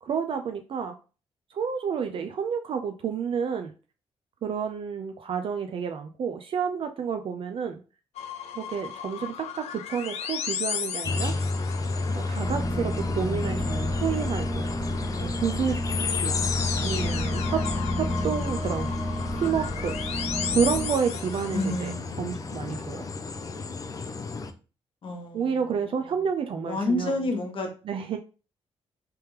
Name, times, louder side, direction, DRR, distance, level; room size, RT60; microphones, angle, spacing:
voice 1, 0.0-1.0 1.5-3.7 4.4-7.8 8.6-11.4 12.1-14.7 15.2-15.8 16.1-16.5 16.8-17.7 18.0-18.9 19.3-20.0 20.5-23.1 25.3-27.1 27.8-28.2, right 7 dB, 55° right, 6 dB, 0.4 m, -30 dB
sound 1, 8.2-21.9, left 8 dB, 90° left, 0.5 m, -35 dB
sound 2, 11.0-24.5, left 3 dB, 35° left, 0.4 m, -31 dB
sound 3, 12.4-20.9, right 1 dB, 10° right, 1.2 m, -33 dB
voice 2, 21.5-22.6 25.0-26.2 26.7-27.7, left 2 dB, 50° left, 4 dB, 1.0 m, -30 dB
3.4 x 3.0 x 3.1 m, 0.34 s
cardioid pair, 95°, 11 cm